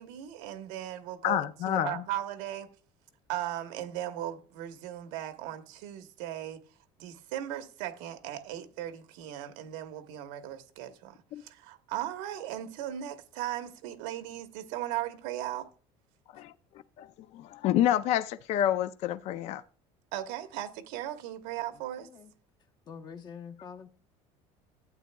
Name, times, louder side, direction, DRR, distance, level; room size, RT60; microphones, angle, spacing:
voice 1, 0.0-2.7 3.3-6.6 7.0-15.7 20.1-22.1, right 12 dB, 90° right, 1.1 m, -37 dB
voice 2, 1.2-2.0 11.3-11.4 16.3-16.5 17.0-17.1 17.3-19.6, left 12 dB, 55° left, 0.4 m, -28 dB
voice 3, 21.7-22.3 22.9-23.9, left 6 dB, 30° left, 0.9 m, -46 dB
12.0 x 8.9 x 2.3 m
cardioid pair, 145°, 13 cm